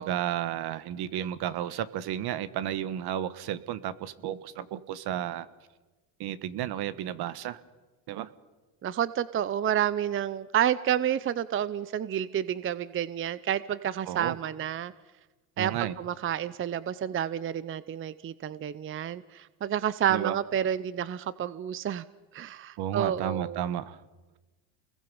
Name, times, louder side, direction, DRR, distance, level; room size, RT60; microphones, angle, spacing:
voice 1, 0.0-5.5 6.2-7.6 8.1-8.3 14.1-14.4 15.6-15.9 20.1-20.3 22.8-24.0, right 11 dB, 60° right, 14 dB, 1.4 m, -32 dB
voice 2, 8.8-14.9 15.6-22.0 22.3-23.7, right 10 dB, 30° right, 16 dB, 0.7 m, -30 dB
29.5 x 21.5 x 5.5 m, 1.2 s
supercardioid pair, 105°, 43 cm